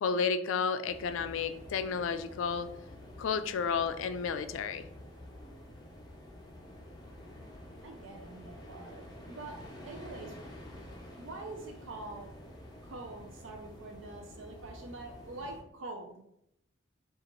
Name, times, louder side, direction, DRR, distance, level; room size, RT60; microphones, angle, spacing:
voice 1, 0.0-2.7 3.2-4.9, left 6 dB, 75° left, 11 dB, 0.3 m, -32 dB
sound 1, 0.8-15.6, left 1 dB, 20° left, 0.7 m, -49 dB
voice 2, 7.8-10.3 11.1-12.3 12.8-16.2, right 2 dB, 75° right, 2 dB, 0.5 m, -45 dB
4.9 x 2.5 x 3.0 m, 0.77 s
head